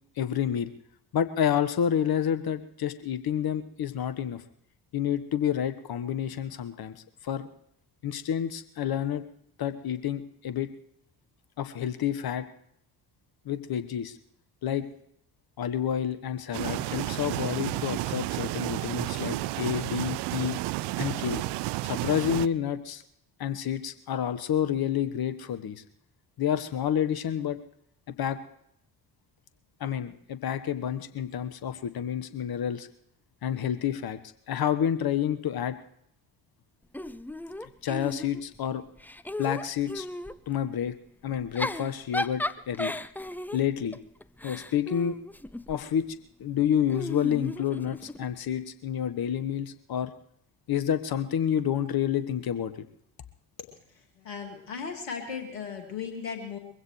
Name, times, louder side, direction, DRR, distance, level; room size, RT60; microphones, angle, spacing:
voice 1, 0.2-0.7 1.1-4.4 4.9-6.9 7.2-7.5 8.0-9.2 9.6-10.7 11.6-12.4 13.4-14.1 14.6-14.9 15.6-20.6 21.0-21.4 21.8-23.0 23.4-25.8 26.4-27.6 28.2-28.4 29.8-32.9 33.4-34.2 34.5-35.8 37.6-38.8 39.4-40.1 40.5-40.9 41.2-42.9 43.5-44.0 44.4-45.2 45.7-46.0 46.4-50.1 50.7-52.7, left 9 dB, 50° left, 11 dB, 1.3 m, -29 dB
sound 1, 16.5-22.5, right 17 dB, 55° right, 0.6 m, -31 dB
Giggle / Chuckle chortle, 36.9-38.6 39.0-40.4 41.3-45.8 46.9-48.3, left 1 dB, 5° left, 0.5 m, -35 dB
voice 2, 54.2-56.6, left 6 dB, 80° left, 5 dB, 2.4 m, -36 dB
22.5 x 16.0 x 3.2 m, 0.70 s
figure-of-eight pair, 45°, 49 cm